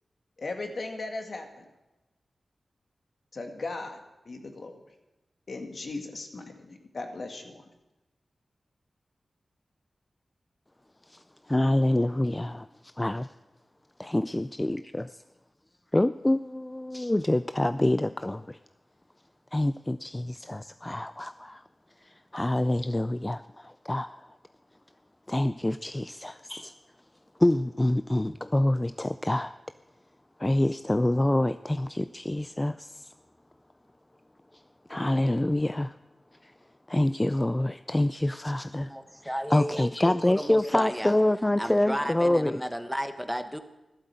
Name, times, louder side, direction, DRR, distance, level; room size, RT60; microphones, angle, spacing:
voice 1, 0.4-1.7 3.3-4.0 4.3-4.8 5.5-7.5, left 3 dB, 60° left, 2.2 m, -37 dB
voice 2, 11.1-12.7 13.0-13.3 14.0-15.1 15.9-18.6 19.5-21.6 22.0-24.3 25.3-26.7 27.4-29.6 30.4-33.1 34.9-35.9 36.4-36.5 36.9-38.9 39.2-42.6, left 1 dB, 20° left, 0.4 m, -26 dB
voice 3, 38.9-41.1 41.6-43.6, equal, ahead, 1.2 m, -33 dB
13.0 x 12.0 x 8.0 m
wide cardioid pair, 65°, 0 cm